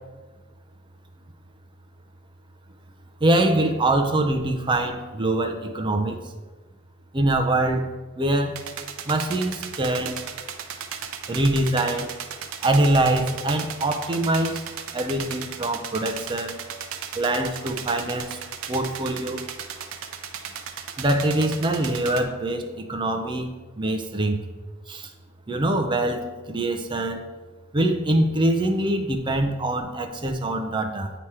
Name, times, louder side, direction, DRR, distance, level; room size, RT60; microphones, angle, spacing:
voice 1, 3.2-6.2 7.1-7.8 8.2-8.5 9.1-10.2 11.3-12.1 12.6-14.6 14.9-16.6 17.1-18.4 18.7-19.4 21.0-23.5 23.8-24.4 24.9-25.1 25.5-27.2 27.7-31.1, right 1 dB, 20° right, 5 dB, 0.5 m, -24 dB
sound 1, 8.5-22.2, right 7 dB, 70° right, 0.5 m, -36 dB
8.6 x 3.0 x 4.7 m, 1.3 s
head